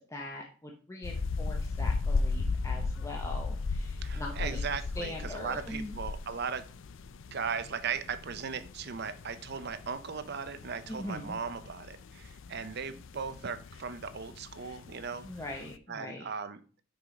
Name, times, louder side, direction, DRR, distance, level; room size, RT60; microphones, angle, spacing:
voice 1, 0.0-4.6 5.0-6.0 10.9-11.3 15.2-16.3, left 1 dB, 15° left, 0 dB, 0.8 m, -41 dB
sound 1, 1.0-15.8, left 3 dB, 60° left, 0.4 m, -36 dB
voice 2, 4.0-6.7 7.3-15.3 15.9-16.6, right 6 dB, 50° right, 12 dB, 0.6 m, -37 dB
6.1 x 5.0 x 5.0 m, 0.39 s
head